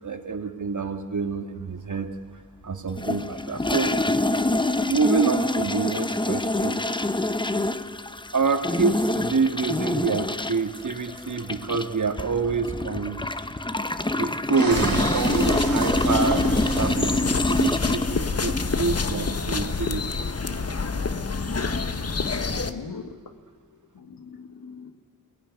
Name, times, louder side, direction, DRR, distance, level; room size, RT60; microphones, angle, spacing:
voice 1, 0.0-2.1 2.6-3.9 4.8-6.9 8.3-13.3 14.1-20.2, right 4 dB, 60° right, 6 dB, 2.0 m, -27 dB
sound 1, 3.0-18.8, left 2 dB, 15° left, 0.8 m, -26 dB
sound 2, 14.5-18.4, right 5 dB, 85° right, 2.4 m, -34 dB
sound 3, 14.7-22.7, left 4 dB, 45° left, 1.2 m, -27 dB
voice 2, 22.5-23.0 24.0-24.9, left 5 dB, 85° left, 7 dB, 1.9 m, -40 dB
22.0 x 18.0 x 9.7 m, 1.5 s
wide cardioid pair, 80°, 34 cm